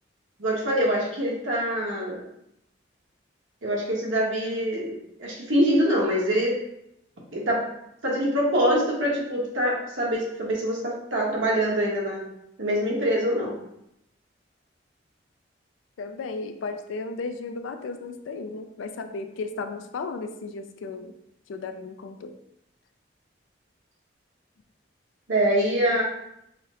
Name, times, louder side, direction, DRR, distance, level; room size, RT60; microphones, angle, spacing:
voice 1, 0.4-2.2 3.6-6.6 7.3-7.6 8.0-12.2 12.6-13.5 25.3-26.0, equal, 85° right, -4 dB, 1.2 m, -24 dB
voice 2, 16.0-21.1 21.5-22.3, left 3 dB, 90° left, 8 dB, 0.4 m, -34 dB
4.1 x 2.1 x 3.7 m, 0.79 s
head